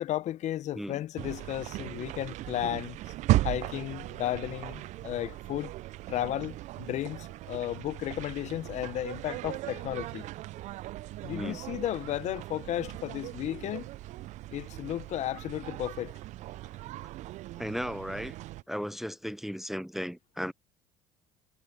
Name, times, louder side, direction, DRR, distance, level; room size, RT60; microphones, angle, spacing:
voice 1, 0.0-3.0 3.4-5.7 6.1-10.3 11.2-13.9 14.5-16.1, left 13 dB, 55° left, 0.9 m, -34 dB
sound 1, 1.2-18.6, right 17 dB, 60° right, 0.4 m, -37 dB
voice 2, 11.3-11.6 17.6-18.4 18.7-20.5, equal, ahead, 0.7 m, -35 dB
hypercardioid pair, 70°, 14 cm